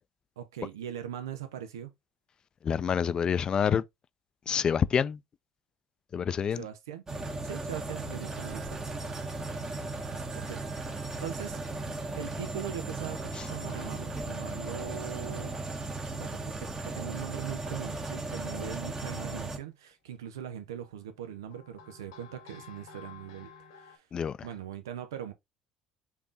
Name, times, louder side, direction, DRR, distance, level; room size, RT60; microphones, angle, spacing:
voice 1, 0.4-1.9 6.5-7.0 7.4-8.8 10.3-10.6 11.2-11.6 12.1-15.6 16.1-24.1 24.4-25.3, right 9 dB, 85° right, 0.5 m, -41 dB
voice 2, 2.6-3.8 4.5-5.2 6.1-6.6 13.4-13.5 24.1-24.4, left 7 dB, 40° left, 0.3 m, -27 dB
sound 1, 7.1-19.6, right 2 dB, 25° right, 1.0 m, -36 dB
sound 2, 12.9-15.2 15.7-16.1 18.3-18.4 19.5-20.1 20.8-24.0, left 6 dB, 80° left, 1.1 m, -54 dB
3.5 x 2.6 x 3.6 m
hypercardioid pair, 65°, 2 cm